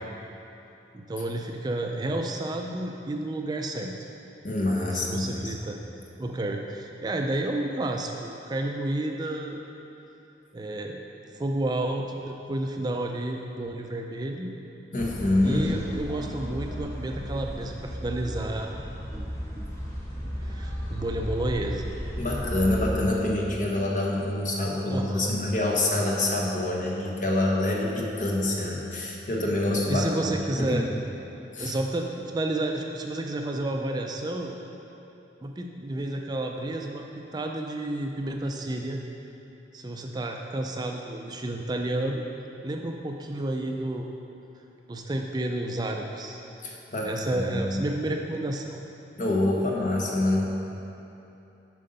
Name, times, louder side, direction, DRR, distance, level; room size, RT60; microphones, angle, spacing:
voice 1, 0.9-3.9 4.9-5.8 6.2-9.6 10.5-11.0 11.3-14.5 15.4-18.7 19.1-19.3 19.5-19.7 20.4-21.9 24.9-25.4 29.9-30.9 31.6-34.6 35.4-39.0 39.7-42.2 42.6-44.1 44.9-46.4 47.0-48.8, right 1 dB, 25° right, 2 dB, 0.4 m, -31 dB
voice 2, 4.4-5.5 14.9-15.8 22.2-30.8 31.5-31.7 46.6-47.7 49.2-50.5, left 1 dB, 45° left, -2 dB, 1.0 m, -26 dB
sound 1, 15.0-23.0, equal, 15° left, 1.1 m, -34 dB
7.6 x 5.4 x 5.3 m, 3.0 s
head